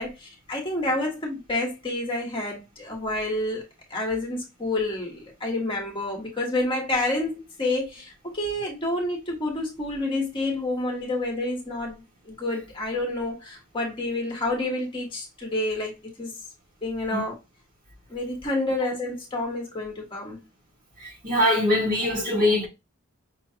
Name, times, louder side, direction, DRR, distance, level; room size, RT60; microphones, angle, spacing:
voice 1, 0.0-16.4 16.8-17.3 18.1-20.4, left 2 dB, 25° left, 1.2 m, -29 dB
voice 2, 21.0-22.7, left 1 dB, 40° right, 1.8 m, -22 dB
5.6 x 3.1 x 2.8 m
head